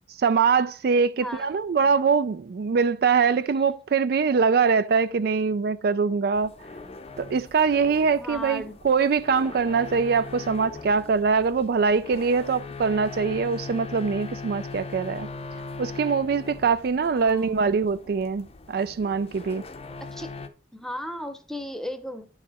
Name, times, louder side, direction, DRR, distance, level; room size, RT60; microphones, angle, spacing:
voice 1, 0.2-6.5 7.2-15.3 15.8-19.6, right 5 dB, 60° right, 0.4 m, -23 dB
voice 2, 1.1-1.5 1.8-1.9 8.2-8.8 17.0-17.7 20.1-20.3 20.7-22.3, equal, 5° left, 0.8 m, -36 dB
sound 1, 6.3-20.5, left 4 dB, 35° left, 0.6 m, -40 dB
10.0 x 4.8 x 4.2 m
head